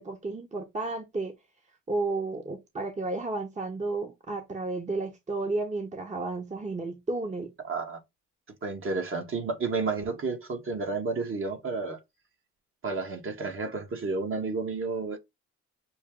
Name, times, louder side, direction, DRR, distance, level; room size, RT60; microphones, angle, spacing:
voice 1, 0.0-1.3 1.9-7.5, right 3 dB, 25° right, 1.0 m, -32 dB
voice 2, 7.7-8.0 8.6-12.0 12.8-15.2, right 4 dB, 45° right, 1.4 m, -31 dB
6.2 x 2.3 x 3.7 m
cardioid pair, 90°, 30 cm